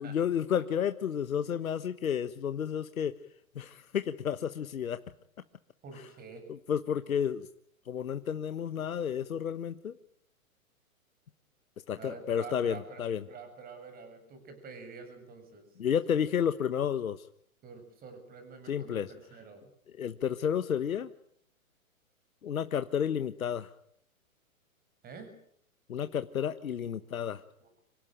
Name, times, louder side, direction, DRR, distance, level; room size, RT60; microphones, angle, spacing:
voice 1, 0.0-3.2 3.5-5.0 6.7-7.5 7.9-9.9 11.9-13.2 15.8-17.3 18.7-19.1 20.0-21.1 22.4-23.7 25.9-27.4, left 8 dB, 75° left, 11 dB, 1.3 m, -31 dB
voice 2, 5.8-6.4 12.0-13.0 13.3-15.7 16.1-16.2 17.6-19.7 25.0-25.3 27.6-27.8, right 4 dB, 20° right, 7 dB, 7.6 m, -47 dB
26.0 x 17.5 x 9.0 m, 0.68 s
hypercardioid pair, 125°, 42 cm